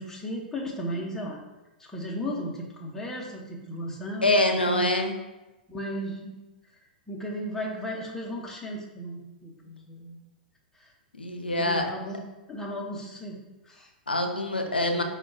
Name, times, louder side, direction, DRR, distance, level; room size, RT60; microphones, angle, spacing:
voice 1, 0.0-1.4 1.8-4.8 5.7-6.4 7.1-10.2 10.8-10.9 11.6-13.4 13.6-13.9, equal, 10° left, -3 dB, 0.7 m, -35 dB
voice 2, 4.2-5.2 11.2-11.9 14.1-15.0, left 1 dB, 85° left, 4 dB, 0.5 m, -25 dB
4.7 x 2.2 x 3.7 m, 1.0 s
figure-of-eight pair, 105°, 5 cm